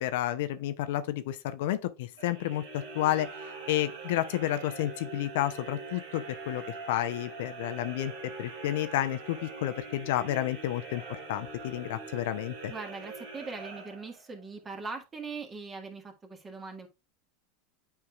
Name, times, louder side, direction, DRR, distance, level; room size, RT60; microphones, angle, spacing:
voice 1, 0.0-3.3 3.7-8.1 8.4-11.0 11.3-12.7, left 13 dB, 70° left, 0.6 m, -31 dB
sound 1, 2.1-14.4, right 3 dB, 80° right, 2.4 m, -43 dB
voice 2, 12.7-16.9, right 4 dB, 25° right, 1.6 m, -41 dB
8.8 x 4.7 x 2.3 m
hypercardioid pair, 90°, 0 cm